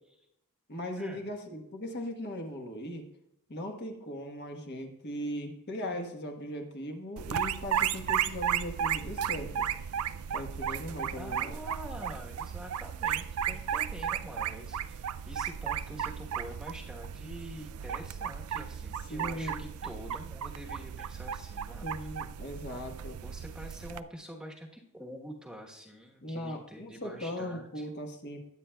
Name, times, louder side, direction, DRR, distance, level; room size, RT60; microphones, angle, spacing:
voice 1, 0.7-3.0 3.5-9.7 10.3-11.5 19.1-19.6 21.8-23.2 26.2-28.4, equal, 50° left, 3 dB, 1.2 m, -38 dB
sound 1, 7.2-24.0, right 8 dB, 80° right, 0.4 m, -34 dB
voice 2, 11.1-22.1 23.2-27.9, equal, 5° right, -1 dB, 1.1 m, -46 dB
21.5 x 8.8 x 2.3 m, 0.86 s
head